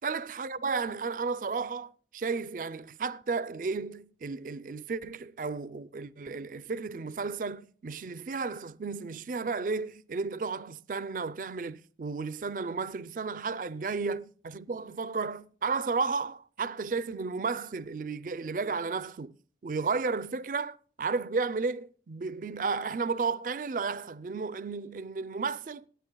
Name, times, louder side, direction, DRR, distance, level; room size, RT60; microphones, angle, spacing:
voice 1, 0.0-19.3 19.6-25.8, right 4 dB, 50° right, 0.4 m, -33 dB
26.5 x 9.3 x 2.2 m
head